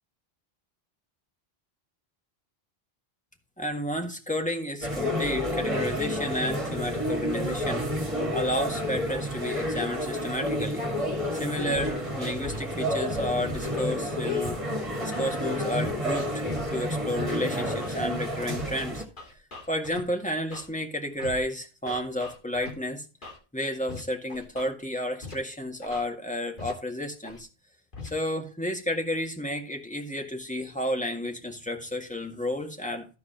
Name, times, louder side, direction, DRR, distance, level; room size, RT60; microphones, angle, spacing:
voice 1, 3.6-10.8 11.3-14.6 15.0-19.0 19.7-23.1 23.5-27.5 28.0-33.1, left 1 dB, 5° left, 1.9 m, -31 dB
sound 1, 4.8-19.0, equal, 30° right, 2.6 m, -30 dB
Scratching (performance technique), 11.7-11.9 12.4-12.6 13.1-13.9 14.4-14.5 15.1-15.3 15.8-16.6 17.1-17.3 17.8-18.0 18.5-18.6 19.2-20.0 20.5-20.7 21.2-21.4 21.9-22.7 23.2-23.4 23.9-24.0 24.3-24.7 25.2-25.3 25.8-26.0 26.6-26.7 27.2-27.4 27.9-28.1, left 2 dB, 55° left, 2.9 m, -40 dB
14.5 x 4.8 x 4.4 m
omnidirectional pair, 1.0 m